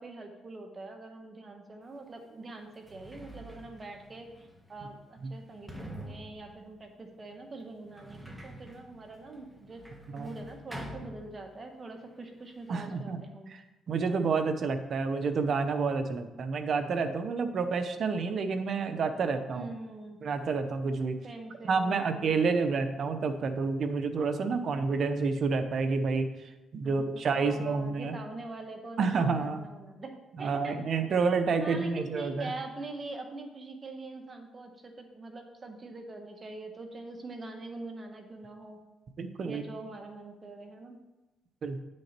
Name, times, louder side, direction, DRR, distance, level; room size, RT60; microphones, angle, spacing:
voice 1, 0.0-9.8 10.2-13.5 19.5-20.2 21.2-22.8 26.8-30.7 31.6-38.8 39.4-41.0, right 2 dB, 35° right, 4 dB, 1.4 m, -44 dB
Sliding door, 1.9-2.0 2.6-11.8 12.1-12.9, right 1 dB, 5° right, 1.4 m, -47 dB
voice 2, 12.7-13.2 13.5-19.7 20.2-21.2 21.6-28.2 29.0-29.7 30.4-32.5 39.2-39.6 41.6-41.8, right 4 dB, 55° right, 8 dB, 0.9 m, -29 dB
9.2 x 6.4 x 4.4 m, 1.0 s
cardioid pair, 90°, 0 cm